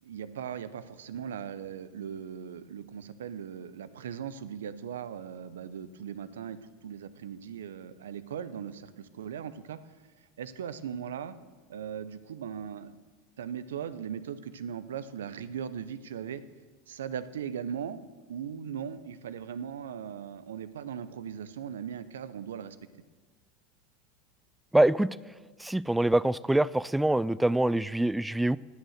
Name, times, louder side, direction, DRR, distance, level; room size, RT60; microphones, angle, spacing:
voice 1, 0.0-9.8 10.4-11.4 11.7-13.0 13.4-16.4 16.9-18.0 18.3-22.8, right 8 dB, 80° right, 14 dB, 0.7 m, -39 dB
voice 2, 24.7-25.2 25.6-28.6, right 1 dB, 5° right, 20 dB, 0.3 m, -25 dB
18.5 x 6.5 x 6.5 m, 1.4 s
hypercardioid pair, 85°, 0 cm